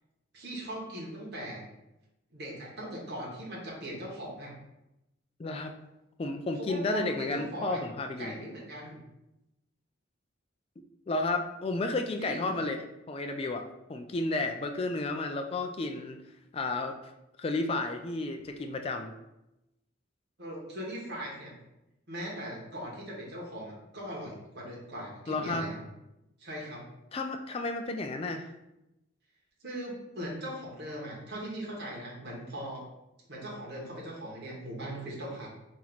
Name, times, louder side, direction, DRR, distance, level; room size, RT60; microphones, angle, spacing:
voice 1, 0.3-1.6 2.3-4.5 6.5-7.8 8.2-9.0 12.2-12.5 20.4-21.5 22.1-25.8 26.4-26.9 29.6-32.8 33.3-35.5, right 1 dB, 50° right, -4 dB, 1.3 m, -39 dB
voice 2, 5.4-5.7 6.2-8.3 11.1-12.8 13.1-16.2 16.5-16.9 17.4-19.1 25.3-25.7 27.1-28.5, left 2 dB, 30° left, 5 dB, 0.3 m, -32 dB
4.5 x 2.9 x 4.0 m, 0.92 s
head